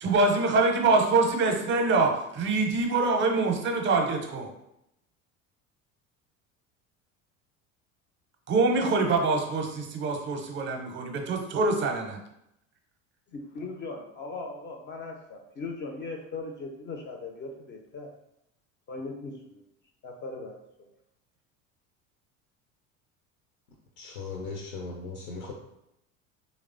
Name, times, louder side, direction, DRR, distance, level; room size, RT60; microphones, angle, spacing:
voice 1, 0.0-4.5 8.5-12.2, right 3 dB, 30° right, 3 dB, 0.5 m, -25 dB
voice 2, 13.3-18.1 18.9-19.6 20.0-20.6, left 3 dB, 30° left, 3 dB, 0.4 m, -39 dB
voice 3, 24.0-25.5, left 4 dB, 80° left, -1 dB, 0.6 m, -38 dB
3.0 x 2.0 x 2.4 m, 0.81 s
hypercardioid pair, 75°, 41 cm